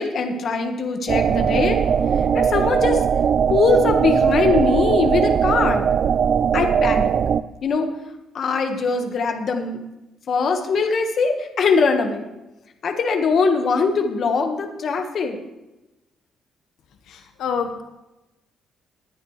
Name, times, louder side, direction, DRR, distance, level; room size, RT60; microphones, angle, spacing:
voice 1, 0.0-1.8 2.3-3.0 3.5-5.9 6.5-7.1 7.6-7.9 8.3-9.8 10.3-12.3 12.8-15.4, left 4 dB, 45° left, 5 dB, 1.5 m, -21 dB
sound 1, 1.1-7.4, right 7 dB, 45° right, 0.4 m, -19 dB
voice 2, 17.1-17.8, left 6 dB, 75° left, 5 dB, 1.2 m, -27 dB
19.5 x 10.5 x 3.3 m, 0.98 s
cardioid pair, 150°, 0 cm